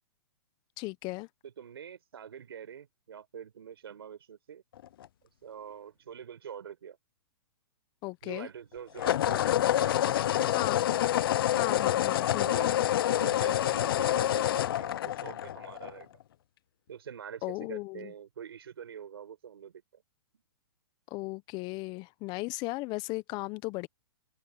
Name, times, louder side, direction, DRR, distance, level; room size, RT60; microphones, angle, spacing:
voice 1, 0.8-1.3 8.0-8.5 10.5-10.8 11.6-12.7 17.4-18.1 21.1-23.9, left 23 dB, 35° left, 1.1 m, -36 dB
voice 2, 1.4-4.6 5.4-7.0 8.2-9.5 9.8-10.7 11.7-12.7 13.1-16.2 16.9-20.0, right 8 dB, 80° right, 4.8 m, -45 dB
sound 1, 4.8-5.1 9.0-16.0, left 12 dB, 65° left, 0.7 m, -27 dB
hypercardioid pair, 130°, 13 cm